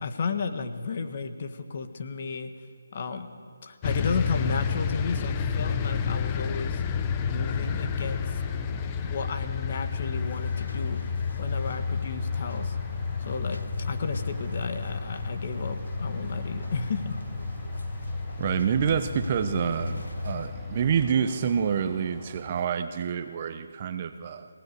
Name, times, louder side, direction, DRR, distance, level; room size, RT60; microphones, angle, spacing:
voice 1, 0.0-2.5 2.9-3.3 3.6-6.8 7.2-8.4 9.0-11.0 11.4-12.8 13.2-17.2, left 4 dB, 40° left, 7 dB, 1.6 m, -33 dB
sound 1, 3.8-21.1, left 6 dB, 20° left, 0.9 m, -31 dB
sound 2, 7.6-22.6, right 2 dB, 10° right, 4.6 m, -50 dB
sound 3, 10.1-20.5, left 1 dB, 85° left, 0.9 m, -37 dB
voice 2, 18.4-24.5, right 7 dB, 30° right, 10 dB, 0.9 m, -27 dB
25.0 x 18.5 x 6.7 m, 2.1 s
figure-of-eight pair, 160°, 0 cm